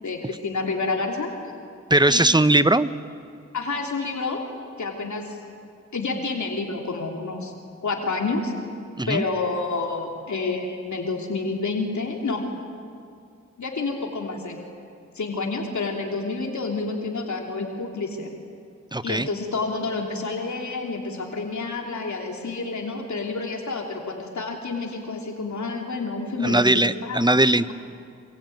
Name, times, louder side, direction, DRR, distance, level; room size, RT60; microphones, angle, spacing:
voice 1, 0.0-1.3 2.0-2.4 3.5-4.4 4.8-5.4 5.9-7.5 7.8-8.5 9.1-12.5 13.6-14.6 15.1-18.3 19.0-27.3, left 3 dB, 75° left, 1 dB, 3.2 m, -29 dB
voice 2, 1.9-2.9 9.0-9.2 18.9-19.3 26.4-27.7, right 1 dB, 15° right, 13 dB, 1.0 m, -19 dB
27.0 x 23.5 x 9.3 m, 2.4 s
cardioid pair, 50°, 29 cm